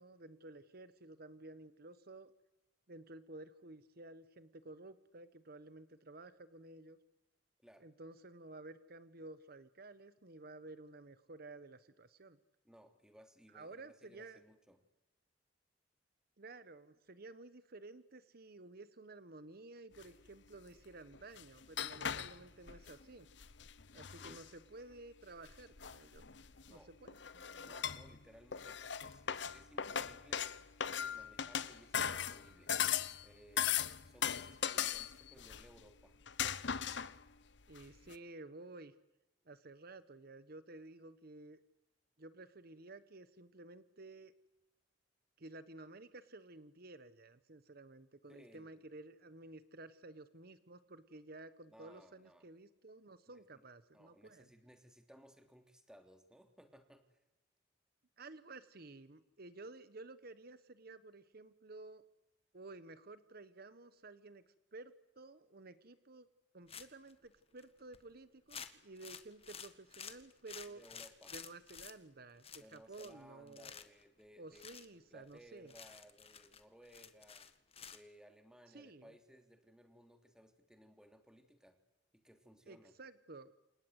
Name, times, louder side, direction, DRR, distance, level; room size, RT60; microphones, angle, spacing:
voice 1, 0.0-2.3 2.9-7.0 7.8-12.4 13.5-14.4 16.4-23.3 23.9-26.2 26.7-27.7 37.7-38.9 39.4-41.6 42.2-44.3 45.4-54.5 58.2-62.0 62.5-66.3 66.5-70.8 71.3-73.7 74.4-75.7 78.7-79.1 82.7-83.5, right 2 dB, 55° right, 13 dB, 1.2 m, -53 dB
voice 2, 12.6-14.8 23.9-24.4 26.7-26.9 27.6-30.5 30.9-32.7 33.2-36.1 48.3-48.8 51.7-52.5 53.3-53.6 53.9-57.2 70.7-71.4 72.6-77.5 77.9-81.8 82.1-82.9, equal, 5° right, 5 dB, 3.1 m, -61 dB
sound 1, 20.0-20.1 21.1-23.0 23.4-24.5 25.4-26.7 27.1-28.2 28.5-33.2 33.6-35.9 36.2-37.3 37.8-37.9 38.1-38.2, left 8 dB, 70° left, 1.0 m, -38 dB
sound 2, 66.7-67.1 67.6-67.7 67.9-68.1 68.5-71.9 72.4-73.2 73.5-74.0 74.5-74.9 75.3-75.4 75.7-78.0, left 7 dB, 35° left, 1.7 m, -51 dB
28.5 x 25.5 x 8.2 m, 1.0 s
head